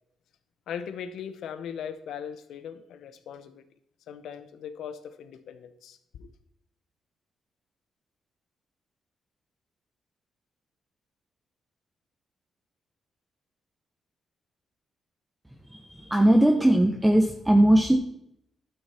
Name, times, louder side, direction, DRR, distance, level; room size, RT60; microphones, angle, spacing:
voice 1, 0.7-3.6 4.1-6.3, left 8 dB, 85° left, 12 dB, 0.9 m, -39 dB
voice 2, 15.7-18.0, right 1 dB, 10° right, 2 dB, 1.1 m, -20 dB
12.0 x 6.6 x 4.4 m, 0.74 s
cardioid pair, 95°, 0 cm